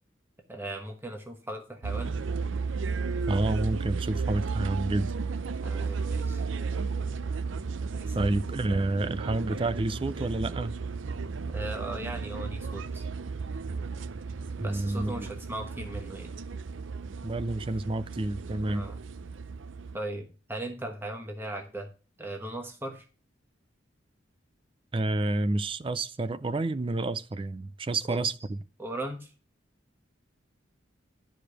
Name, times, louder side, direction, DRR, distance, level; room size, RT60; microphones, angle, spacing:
voice 1, 0.5-2.2 5.6-6.4 7.9-8.2 11.5-13.0 14.6-16.3 18.7-18.9 19.9-21.9 22.2-23.1 28.1-28.2 28.8-29.3, right 1 dB, 10° right, 1.2 m, -38 dB
sound 1, 1.8-20.0, right 4 dB, 80° right, 0.6 m, -34 dB
voice 2, 3.3-5.1 8.1-10.8 14.6-15.3 17.2-18.9 24.9-28.6, right 2 dB, 25° right, 0.4 m, -29 dB
12.0 x 5.0 x 6.1 m
head